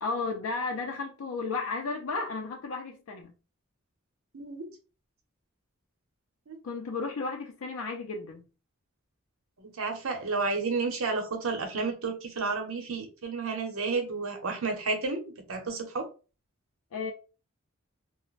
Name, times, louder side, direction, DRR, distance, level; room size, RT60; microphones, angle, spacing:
voice 1, 0.0-3.3 6.6-8.4 16.9-17.1, left 4 dB, 85° left, 0.4 m, -33 dB
voice 2, 4.3-4.7 6.5-6.6 9.6-16.1, right 4 dB, 80° right, 0.7 m, -31 dB
2.4 x 2.0 x 3.1 m
head